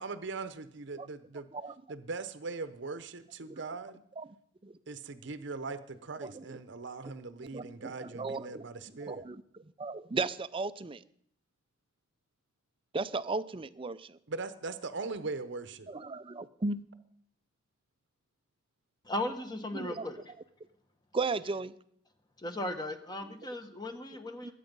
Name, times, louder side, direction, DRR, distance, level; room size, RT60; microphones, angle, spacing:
voice 1, 0.0-1.5 1.9-4.0 4.9-9.2 14.3-15.9, right 3 dB, 65° right, 11 dB, 0.8 m, -40 dB
voice 2, 6.2-6.6 7.4-8.6 9.0-11.0 12.9-14.2 15.9-16.8 19.7-20.1 21.1-21.7 24.4-24.5, right 3 dB, 25° right, 14 dB, 0.5 m, -36 dB
voice 3, 19.0-20.2 22.4-24.5, left 1 dB, 20° left, 7 dB, 1.3 m, -36 dB
21.0 x 8.3 x 5.4 m, 0.68 s
head